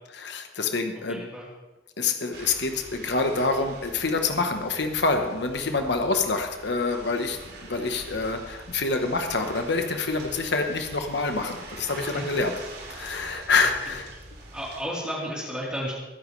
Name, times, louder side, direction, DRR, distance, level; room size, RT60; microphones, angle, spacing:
voice 1, 0.2-1.2 2.0-12.5 12.9-14.1, left 3 dB, 65° left, 5 dB, 1.2 m, -26 dB
voice 2, 0.9-1.5 12.0-12.3 13.6-14.0 14.5-15.9, equal, 5° right, -6 dB, 3.5 m, -34 dB
sound 1, 2.3-14.8, right 2 dB, 60° right, 2.8 m, -44 dB
21.5 x 10.5 x 3.3 m, 1.1 s
head